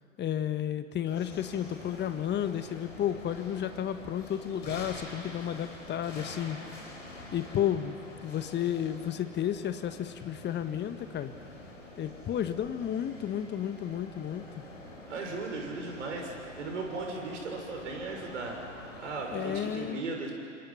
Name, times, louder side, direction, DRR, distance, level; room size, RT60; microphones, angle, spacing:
voice 1, 0.2-6.6 7.3-11.3 12.0-14.6 19.3-20.0, left 10 dB, 30° left, 10 dB, 1.5 m, -32 dB
sound 1, 1.1-19.8, left 1 dB, 80° left, 5.2 m, -47 dB
voice 2, 15.1-18.6 19.0-20.3, right 3 dB, 70° right, 1 dB, 6.5 m, -37 dB
28.5 x 26.5 x 5.9 m, 2.3 s
figure-of-eight pair, 85°, 37 cm